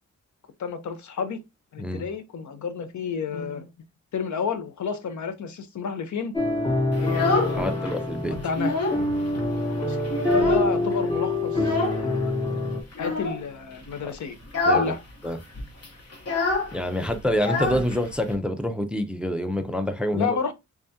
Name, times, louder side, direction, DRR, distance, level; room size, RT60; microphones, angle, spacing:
voice 1, 0.6-1.4 1.7-3.7 4.1-6.3 7.0-7.9 8.3-8.7 9.7-10.0 10.3-12.4 13.0-14.4 14.7-15.0 20.1-20.5, left 5 dB, 75° left, 0.7 m, -31 dB
sound 1, 6.3-12.8, left 2 dB, 20° left, 0.8 m, -26 dB
Child speech kid speaking, 6.9-8.0 8.3-9.1 9.4-9.5 9.8-10.9 11.6-12.0 12.9-13.4 13.8-14.0 14.4-15.0 15.2-15.3 15.5-18.3, left 3 dB, 55° left, 1.0 m, -26 dB
voice 2, 7.6-8.4 14.0-14.1 14.6-14.9 15.2-15.4 16.7-20.4, equal, 5° right, 0.3 m, -27 dB
3.5 x 3.4 x 2.7 m
wide cardioid pair, 170°, 29 cm